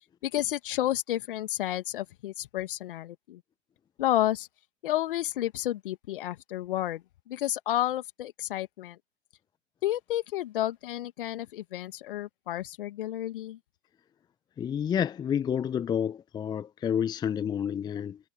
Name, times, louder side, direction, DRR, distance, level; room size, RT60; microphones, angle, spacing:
voice 1, 0.2-3.4 4.0-4.5 4.8-9.0 9.8-13.6, left 13 dB, 45° left, 2.2 m, -31 dB
voice 2, 14.6-18.2, left 8 dB, 10° left, 0.9 m, -29 dB
figure-of-eight pair, 110°, 36 cm